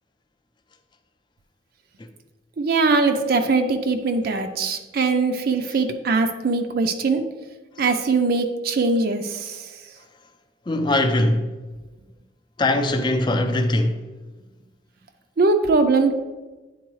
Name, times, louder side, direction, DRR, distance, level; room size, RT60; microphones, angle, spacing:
voice 1, 2.6-7.2 7.8-9.6 15.4-16.1, right 3 dB, 55° right, 0.5 m, -21 dB
voice 2, 10.7-11.5 12.6-14.0, left 1 dB, 25° left, 0.5 m, -21 dB
9.4 x 3.8 x 3.1 m
head